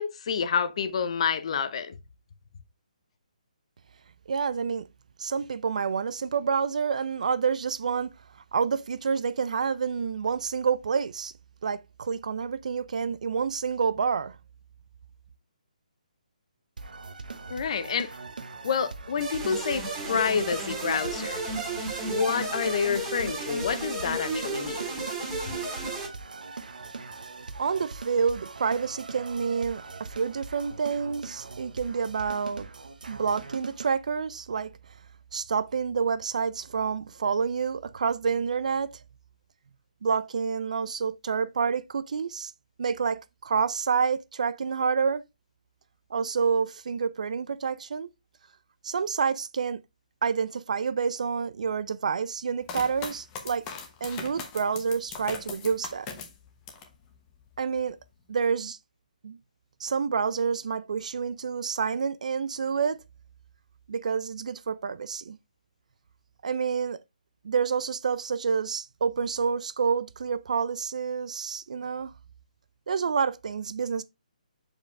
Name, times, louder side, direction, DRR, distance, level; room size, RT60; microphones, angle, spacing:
voice 1, 0.0-1.9 17.5-18.1 18.6-21.4 22.0-24.8, left 6 dB, 45° left, 0.8 m, -28 dB
voice 2, 4.3-4.9 5.2-8.1 8.5-11.3 11.6-14.4 27.5-32.7 33.1-34.7 35.3-38.9 40.0-42.5 42.8-45.2 46.1-48.1 48.8-49.8 50.2-53.6 54.0-56.1 57.6-58.0 58.3-58.8 59.2-59.4 59.8-63.0 63.9-65.4 66.4-67.0 67.4-72.1 72.9-74.0, right 6 dB, 60° right, 0.5 m, -28 dB
sound 1, 16.8-33.9, right 4 dB, 85° right, 1.1 m, -42 dB
sound 2, 19.2-26.1, right 2 dB, 10° right, 2.0 m, -33 dB
sound 3, 52.7-57.0 57.4-58.0, left 5 dB, 15° left, 1.0 m, -40 dB
6.5 x 5.0 x 3.3 m
hypercardioid pair, 165°, 4 cm